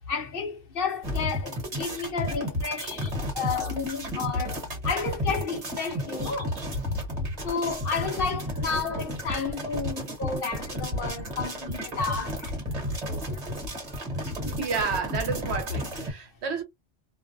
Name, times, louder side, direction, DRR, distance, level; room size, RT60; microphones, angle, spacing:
voice 1, 0.1-3.1 3.4-4.6 4.8-6.5 7.4-12.5, left 5 dB, 60° left, 0.7 m, -31 dB
sound 1, 1.0-16.1, equal, 35° right, 1.1 m, -32 dB
voice 2, 14.4-16.6, right 5 dB, 65° right, 0.9 m, -30 dB
2.5 x 2.1 x 2.6 m
omnidirectional pair, 1.2 m